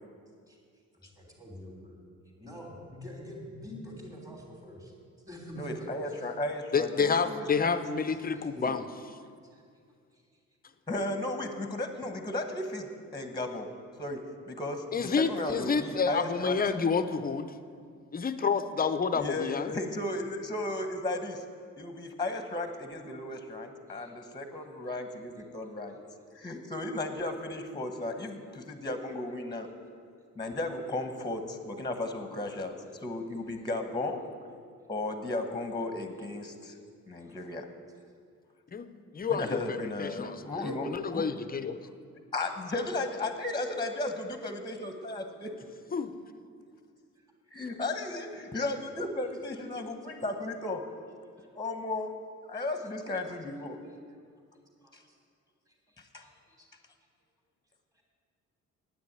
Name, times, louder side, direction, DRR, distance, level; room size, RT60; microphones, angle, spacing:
voice 1, 0.9-2.0 2.4-4.9 5.2-6.3 9.5-9.6 10.1-10.2 23.8-24.1 37.2-37.4 37.9-38.0 47.2-47.3 51.4-51.5 54.3-54.4 54.8-55.2 55.7-55.9 56.2-56.7 57.9-58.0, equal, 10° right, -1 dB, 3.1 m, -46 dB
voice 2, 5.6-6.9 7.3-7.7 8.6-8.7 10.9-13.7 14.0-16.6 19.2-21.4 21.8-25.9 26.3-29.7 30.4-32.7 33.0-34.2 34.9-37.6 39.3-41.2 42.3-45.5 47.5-50.8 51.5-52.1 52.5-53.8 54.9-55.0 56.0-56.2, left 2 dB, 15° left, 6 dB, 1.3 m, -35 dB
voice 3, 6.7-8.9 14.9-17.5 18.1-19.7 38.7-38.9 39.1-41.9 45.9-46.2, left 5 dB, 30° left, 11 dB, 0.7 m, -29 dB
9.5 x 8.7 x 8.9 m, 2.2 s
cardioid pair, 90°, 30 cm